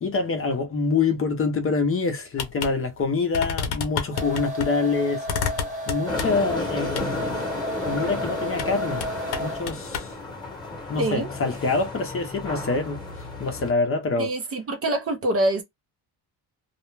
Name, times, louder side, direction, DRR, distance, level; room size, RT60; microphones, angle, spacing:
voice 1, 0.0-5.2 5.9-7.3 7.8-9.0 9.4-10.1 10.9-13.0 13.4-14.3, left 4 dB, 35° left, 0.6 m, -25 dB
sound 1, 2.4-2.7 3.0-3.1 3.3-4.7 5.3-6.5 7.0-7.1 8.5-8.7 9.0-10.1, left 6 dB, 70° left, 0.7 m, -30 dB
sound 2, 4.1-9.8, equal, 20° right, 0.9 m, -33 dB
sound 3, 6.1-13.7, left 2 dB, 10° left, 1.0 m, -33 dB
voice 2, 11.0-11.3 14.2-15.6, right 1 dB, 35° right, 0.5 m, -25 dB
2.4 x 2.1 x 3.1 m
cardioid pair, 155°, 41 cm